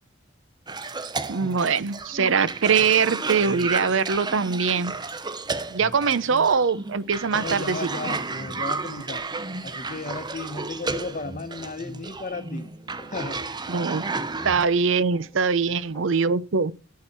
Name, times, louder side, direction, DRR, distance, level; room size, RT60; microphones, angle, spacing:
Cough, 0.7-14.6, right 3 dB, 20° right, 0.7 m, -33 dB
voice 1, 1.3-4.9 5.7-7.8 13.7-14.0 14.4-16.7, right 5 dB, 70° right, 0.6 m, -22 dB
voice 2, 7.2-9.2 9.6-12.7 13.1-13.7 15.7-15.8, left 3 dB, 40° left, 1.0 m, -35 dB
sound 1, 10.7-16.4, right 1 dB, 15° left, 3.5 m, -52 dB
10.5 x 8.5 x 4.3 m
head